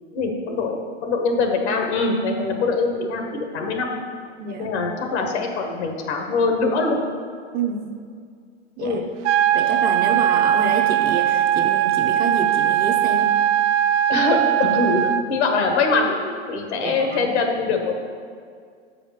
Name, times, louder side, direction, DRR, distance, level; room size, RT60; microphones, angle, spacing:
voice 1, 0.1-3.9 4.6-7.0 8.8-9.0 14.1-17.9, left 3 dB, 70° left, 3 dB, 1.5 m, -23 dB
voice 2, 4.4-4.7 7.5-7.8 8.8-9.0 9.5-13.3 16.7-17.3, right 5 dB, 25° right, 3 dB, 0.7 m, -28 dB
sound 1, 9.2-15.2, right 11 dB, 75° right, 0.5 m, -19 dB
7.2 x 5.0 x 6.0 m, 2.1 s
hypercardioid pair, 125°, 35 cm